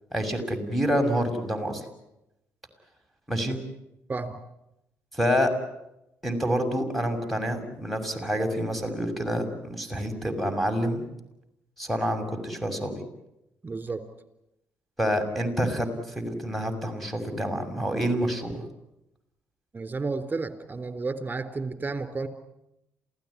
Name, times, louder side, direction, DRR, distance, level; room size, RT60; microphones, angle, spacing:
voice 1, 0.1-1.8 3.3-3.6 5.1-5.5 6.2-11.1 11.8-13.0 15.0-15.9 16.1-18.6, equal, ahead, 5 dB, 6.6 m, -27 dB
voice 2, 13.6-14.0 19.7-22.3, right 3 dB, 30° right, 10 dB, 3.6 m, -32 dB
28.0 x 17.0 x 10.0 m, 0.88 s
hypercardioid pair, 50°, 6 cm